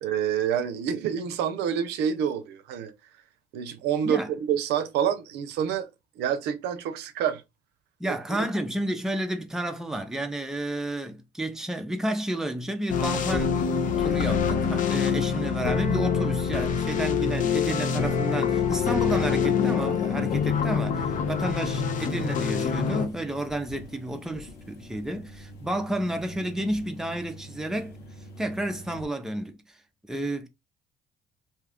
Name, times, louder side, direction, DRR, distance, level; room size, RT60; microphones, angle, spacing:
voice 1, 0.0-2.9 3.5-5.9 6.2-7.4 8.1-8.5, right 8 dB, 85° right, 0.6 m, -27 dB
voice 2, 8.0-13.6 14.0-28.0 28.4-29.6 30.1-30.5, right 1 dB, 5° right, 0.5 m, -31 dB
sound 1, 12.9-23.1, left 6 dB, 50° left, 0.5 m, -25 dB
sound 2, 20.1-29.1, equal, 80° left, 1.0 m, -45 dB
2.8 x 2.3 x 3.5 m
cardioid pair, 110°, 17 cm